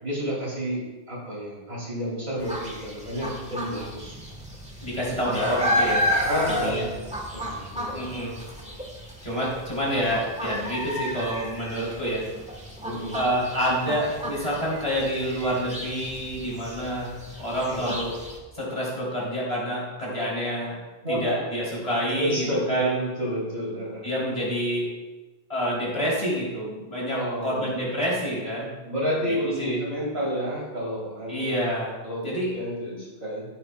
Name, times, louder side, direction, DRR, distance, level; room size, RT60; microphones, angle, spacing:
voice 1, 0.0-4.2 6.3-6.9 7.3-7.9 8.6-8.8 12.8-13.2 17.7-17.9 21.0-21.4 22.1-24.1 27.1-27.7 28.8-31.5 32.0-32.3 32.5-33.5, equal, 70° right, -6 dB, 3.9 m, -30 dB
sound 1, 2.4-18.4, equal, 5° right, 1.4 m, -32 dB
voice 2, 4.8-6.1 6.5-6.9 7.9-8.4 9.2-12.3 13.1-18.2 18.5-20.8 21.1-22.9 24.0-24.9 25.5-28.7 29.3-29.8 31.3-32.0 32.2-32.6, equal, 35° left, -6 dB, 3.8 m, -28 dB
14.0 x 8.7 x 2.4 m, 1.2 s
omnidirectional pair, 1.1 m